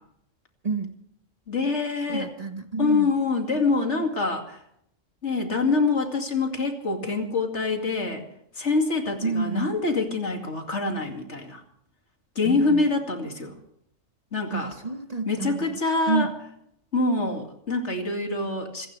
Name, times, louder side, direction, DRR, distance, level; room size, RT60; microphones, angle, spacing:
voice 1, 1.5-2.3 2.8-4.6 5.2-8.2 8.5-11.6 12.4-13.5 14.3-14.7 15.3-16.3 16.9-18.9, left 3 dB, 60° left, 3 dB, 2.7 m, -25 dB
voice 2, 2.1-3.1 9.2-9.7 12.4-12.8 14.5-15.8 16.1-16.3, right 4 dB, 35° right, 6 dB, 1.1 m, -29 dB
26.0 x 15.5 x 3.3 m, 0.72 s
omnidirectional pair, 1.3 m